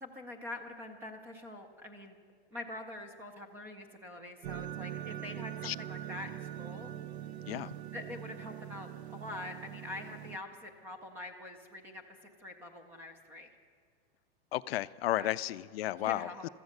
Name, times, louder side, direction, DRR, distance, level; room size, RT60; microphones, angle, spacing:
voice 1, 0.0-2.2 2.5-6.9 7.9-13.5 15.2-15.3 16.0-16.5, left 2 dB, 5° right, 6 dB, 0.4 m, -45 dB
sound 1, 4.4-10.4, right 11 dB, 85° right, 0.8 m, -42 dB
voice 2, 14.5-16.3, left 15 dB, 65° left, 17 dB, 0.5 m, -33 dB
16.0 x 13.5 x 6.5 m, 2.2 s
supercardioid pair, 170°, 32 cm